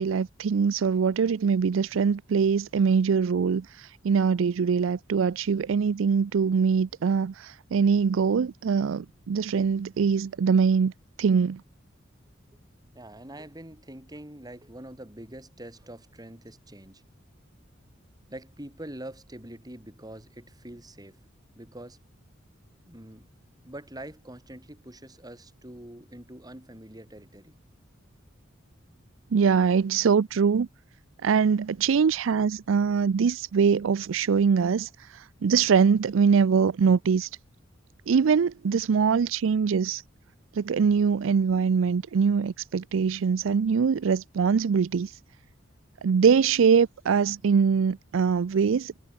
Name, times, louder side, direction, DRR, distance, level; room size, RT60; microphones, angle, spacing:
voice 1, 0.0-10.9 11.2-11.6 29.3-30.7 31.2-37.3 38.1-40.0 40.6-45.1 46.0-49.0, right 6 dB, 80° right, 0.4 m, -23 dB
voice 2, 12.9-17.0 18.3-21.2 21.5-22.0 22.8-23.3 23.6-27.6, right 1 dB, 20° right, 3.7 m, -44 dB
head